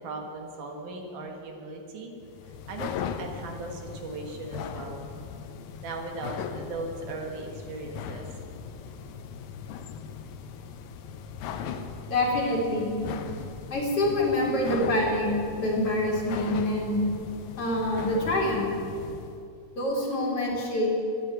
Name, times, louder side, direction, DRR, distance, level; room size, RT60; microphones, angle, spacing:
voice 1, 0.0-2.1 2.7-5.0 5.8-8.2, right 2 dB, 75° right, 2 dB, 3.0 m, -38 dB
sound 1, 2.2-19.4, left 7 dB, 75° left, 2.0 m, -39 dB
voice 2, 12.1-13.0 13.7-15.3 15.6-17.0 17.6-18.7 19.8-20.9, left 1 dB, 50° left, -3 dB, 3.4 m, -26 dB
12.5 x 9.6 x 9.2 m, 2.6 s
omnidirectional pair, 3.7 m